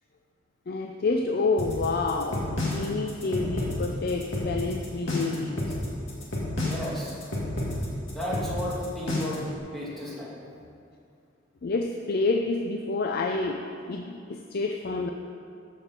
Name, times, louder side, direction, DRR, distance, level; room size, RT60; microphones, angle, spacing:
voice 1, 0.7-5.6 11.6-13.6 13.9-15.1, left 3 dB, 55° left, 3 dB, 0.5 m, -28 dB
sound 1, 1.6-9.5, left 1 dB, 80° left, 2.1 m, -30 dB
voice 2, 6.5-7.1 8.1-9.5 9.7-10.3, left 1 dB, ahead, -7 dB, 2.4 m, -33 dB
13.5 x 6.6 x 4.4 m, 2.5 s
head